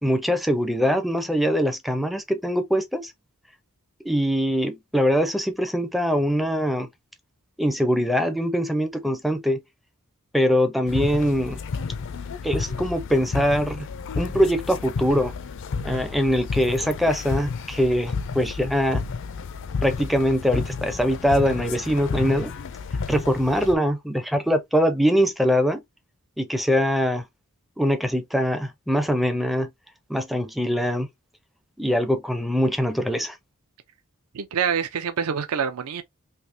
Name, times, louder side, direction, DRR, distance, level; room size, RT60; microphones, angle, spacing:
voice 1, 0.0-3.1 4.0-6.9 7.6-9.6 10.3-11.6 12.4-13.9 14.2-15.3 15.8-19.0 19.8-22.5 23.1-25.8 26.4-27.2 27.8-29.7 30.1-31.1 31.8-33.4, equal, ahead, 0.4 m, -23 dB
sound 1, 10.9-23.8, left 5 dB, 60° left, 0.4 m, -31 dB
voice 2, 34.3-36.0, right 7 dB, 75° right, 0.5 m, -26 dB
3.3 x 2.7 x 2.5 m
head